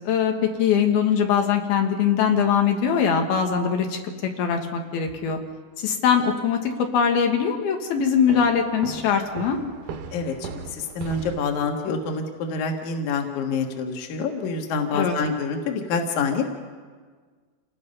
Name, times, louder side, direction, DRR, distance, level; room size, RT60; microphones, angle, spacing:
voice 1, 0.0-4.0 4.4-5.4 5.8-9.6 14.9-15.1, left 7 dB, 80° left, 3 dB, 3.4 m, -22 dB
sound 1, 8.3-12.0, right 5 dB, 65° right, 2.4 m, -38 dB
voice 2, 10.1-16.4, left 4 dB, 60° left, 3 dB, 2.9 m, -27 dB
28.0 x 19.0 x 5.5 m, 1.5 s
omnidirectional pair, 4.4 m